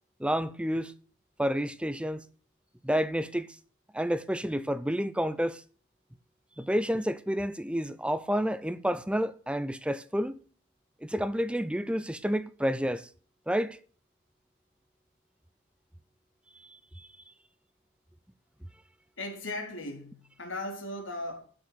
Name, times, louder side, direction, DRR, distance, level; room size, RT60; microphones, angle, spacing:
voice 1, 0.2-0.9 1.4-2.2 2.8-3.5 3.9-5.6 6.6-10.4 11.0-13.1 13.5-13.8 17.0-17.1, equal, 5° right, 0.7 m, -29 dB
voice 2, 19.2-21.4, left 2 dB, 65° left, 4.4 m, -37 dB
15.0 x 6.6 x 8.0 m
head